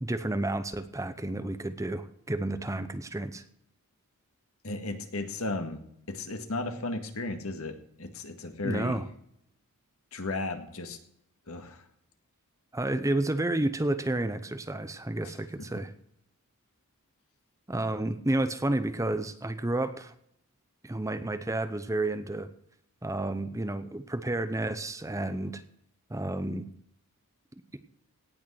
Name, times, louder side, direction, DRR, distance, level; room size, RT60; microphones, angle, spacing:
voice 1, 0.0-3.4 8.6-9.0 12.7-15.9 17.7-20.1 20.8-22.5 23.0-25.6 26.1-26.7 27.7-27.8, right 2 dB, 15° right, 11 dB, 0.7 m, -31 dB
voice 2, 4.6-5.8 6.1-9.0 10.1-11.0 11.5-11.9 15.2-15.3, left 2 dB, 70° left, 7 dB, 1.8 m, -35 dB
17.5 x 6.4 x 6.3 m, 0.71 s
head